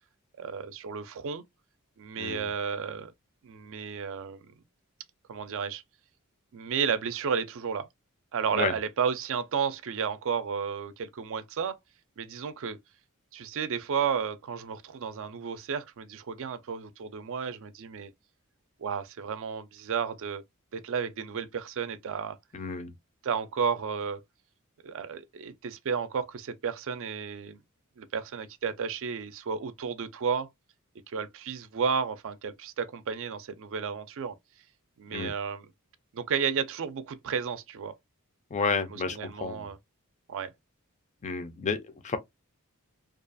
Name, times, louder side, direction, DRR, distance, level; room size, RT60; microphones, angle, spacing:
voice 1, 0.4-1.4 2.0-3.1 3.4-4.5 5.3-5.8 6.5-7.9 8.3-11.8 12.2-12.8 13.3-18.1 18.8-20.4 20.7-22.4 23.2-24.2 24.8-27.6 28.0-30.5 31.1-34.4 35.0-35.7 36.1-37.9 38.6-39.8 40.3-40.5, right 6 dB, 60° right, 0.4 m, -32 dB
voice 2, 22.5-22.9 35.1-35.3 38.5-39.7 41.2-42.2, left 4 dB, 30° left, 0.4 m, -31 dB
2.4 x 2.3 x 2.5 m
head